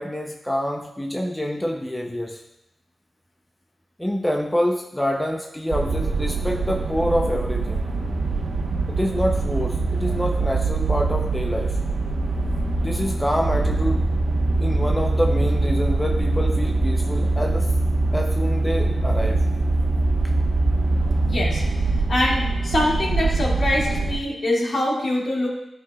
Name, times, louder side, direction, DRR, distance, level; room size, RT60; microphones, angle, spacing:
voice 1, 0.0-2.4 4.0-7.8 8.9-11.8 12.8-14.0 14.6-17.7 18.1-19.4, equal, 10° left, 1 dB, 0.7 m, -26 dB
sound 1, 5.7-24.2, right 2 dB, 65° right, 1.2 m, -23 dB
voice 2, 21.2-21.6 21.9-25.5, left 1 dB, 60° left, -4 dB, 2.4 m, -24 dB
12.5 x 5.7 x 2.4 m, 0.88 s
wide cardioid pair, 80°, 0 cm